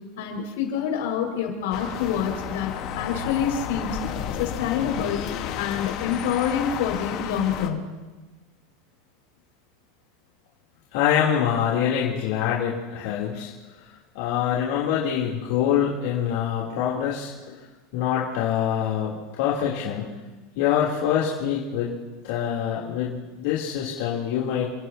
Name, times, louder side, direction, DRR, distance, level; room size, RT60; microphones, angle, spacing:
voice 1, 0.2-4.0 4.4-5.2 5.6-8.0, left 8 dB, 80° left, 1 dB, 5.3 m, -27 dB
sound 1, 1.7-7.7, left 9 dB, 45° left, 1.3 m, -32 dB
voice 2, 10.9-13.5 14.1-17.6 17.9-20.1 20.6-21.9 22.2-24.7, left 9 dB, 65° left, -6 dB, 3.1 m, -25 dB
30.0 x 16.5 x 2.8 m, 1.2 s
supercardioid pair, 165°, 0 cm